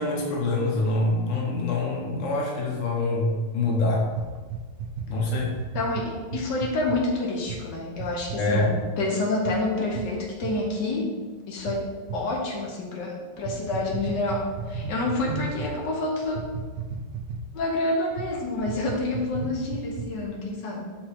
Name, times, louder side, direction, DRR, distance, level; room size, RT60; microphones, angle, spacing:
voice 1, 0.0-4.1 5.1-5.5 8.4-8.7, left 2 dB, 50° left, -2 dB, 1.4 m, -25 dB
sound 1, 4.1-7.0 7.4-7.6 7.9-8.7 9.4-9.6 9.9-10.1 10.4-10.6 11.6-12.2 13.4-15.7 16.3-17.6 18.1-18.3 18.6-20.3, right 5 dB, 75° right, 0.7 m, -34 dB
voice 2, 5.7-11.2 11.5-16.4 17.5-21.0, left 2 dB, 75° left, -1 dB, 1.5 m, -28 dB
7.4 x 4.6 x 3.5 m, 1.4 s
omnidirectional pair, 1.9 m